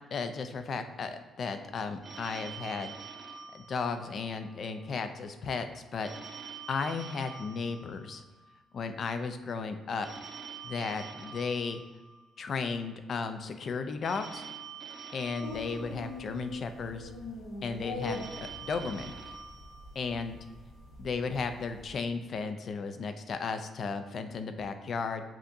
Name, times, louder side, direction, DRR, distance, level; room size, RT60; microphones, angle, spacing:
voice 1, 0.1-2.9 3.5-6.1 6.7-8.2 8.7-10.1 10.6-11.8 12.4-14.4 15.1-17.1 17.6-19.1 20.0-20.4 21.0-25.2, left 4 dB, 55° left, 8 dB, 0.4 m, -34 dB
Telephone, 2.0-4.5 6.0-8.5 10.0-12.5 14.0-16.5 18.0-20.5, right 6 dB, 40° right, 0.6 m, -46 dB
sound 1, 15.4-21.9, left 2 dB, 80° left, 0.9 m, -43 dB
7.3 x 2.7 x 2.6 m, 1.3 s
cardioid pair, 90°, 0 cm